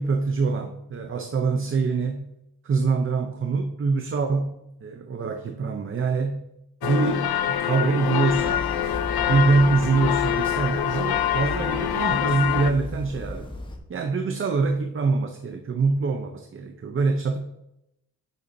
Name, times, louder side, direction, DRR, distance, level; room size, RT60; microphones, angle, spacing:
voice 1, 0.0-2.3 2.6-4.5 4.8-6.4 6.8-8.6 9.2-13.5 13.9-17.4, right 4 dB, 35° right, 5 dB, 0.6 m, -24 dB
sound 1, 6.8-12.7, left 11 dB, 90° left, 0.6 m, -25 dB
sound 2, 8.3-13.8, left 1 dB, 15° left, 1.0 m, -36 dB
9.8 x 6.9 x 2.7 m, 0.84 s
wide cardioid pair, 170°, 36 cm